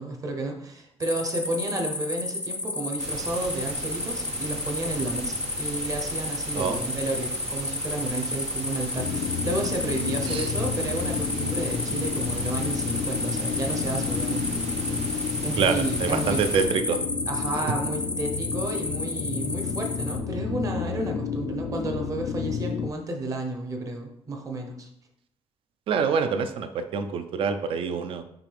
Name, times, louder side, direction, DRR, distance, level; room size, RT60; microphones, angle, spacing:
voice 1, 0.0-16.4 17.3-24.9, right 2 dB, 30° right, 3 dB, 0.9 m, -32 dB
sound 1, 1.0-20.2, left 2 dB, 10° left, 0.4 m, -32 dB
sound 2, 3.0-16.7, right 4 dB, 85° right, 0.9 m, -39 dB
sound 3, 8.9-22.9, left 7 dB, 80° left, 0.4 m, -31 dB
voice 2, 15.6-17.0 17.5-17.6 25.9-28.2, right 6 dB, 55° right, 9 dB, 0.5 m, -26 dB
5.9 x 5.0 x 3.4 m, 0.77 s
cardioid pair, 180°, 11 cm